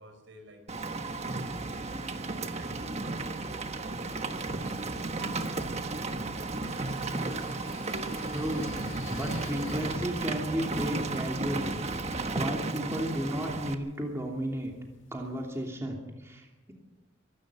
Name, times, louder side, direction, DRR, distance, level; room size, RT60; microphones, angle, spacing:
voice 1, 0.0-2.2 2.5-6.2, right 1 dB, 75° right, 5 dB, 5.6 m, -53 dB
Rain, 0.7-13.7, right 3 dB, 35° right, 1.3 m, -34 dB
sound 1, 5.5-15.7, left 2 dB, 80° left, 1.8 m, -51 dB
voice 2, 8.3-8.7 9.1-14.7 15.1-16.7, equal, 15° right, 0 dB, 2.9 m, -34 dB
24.5 x 12.5 x 8.4 m, 1.1 s
head